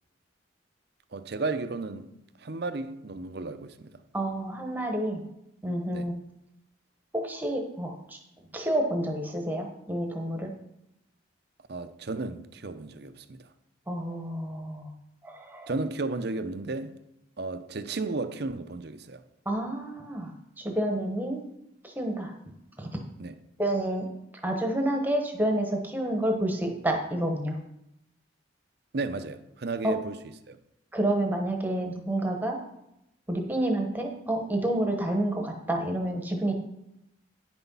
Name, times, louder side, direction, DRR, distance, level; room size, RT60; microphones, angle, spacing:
voice 1, 1.1-2.1 2.4-3.9 5.9-6.1 11.7-13.4 15.7-16.9 17.4-19.2 23.2-23.4 28.9-30.2 30.5-30.6, right 3 dB, 55° right, 0.6 m, -33 dB
voice 2, 4.1-5.3 5.6-6.1 7.1-8.2 8.5-10.5 13.9-14.9 15.2-15.7 19.5-21.4 21.8-22.9 23.6-24.1 24.4-27.6 29.8-29.9 30.9-32.6 33.3-36.5, right 1 dB, 10° right, 1.0 m, -29 dB
9.9 x 6.1 x 5.5 m
head